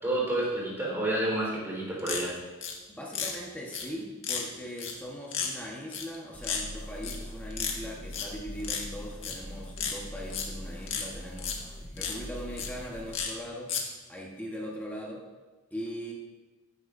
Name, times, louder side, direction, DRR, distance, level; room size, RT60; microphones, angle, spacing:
voice 1, 0.0-2.3, right 1 dB, 10° right, -5 dB, 4.1 m, -29 dB
sound 1, 2.0-2.7 3.1-3.3 3.7-3.8 4.2-4.4 4.8-4.9 5.3-5.5 5.9-6.2 6.4-6.6 7.0-7.2 7.5-7.8 8.1-8.2 8.6-8.8 9.2-9.3 9.8-10.4 10.9-11.1 11.4-11.5 12.0-12.1 12.6-12.7 13.1-13.3 13.7-13.8, left 7 dB, 65° left, 1.7 m, -32 dB
voice 2, 2.9-11.5 11.9-13.7 14.1-15.2 15.7-16.1, equal, 10° left, -3 dB, 1.2 m, -40 dB
sound 2, 6.3-13.2, equal, 30° left, 3.1 m, -42 dB
16.0 x 9.8 x 2.6 m, 1.3 s
head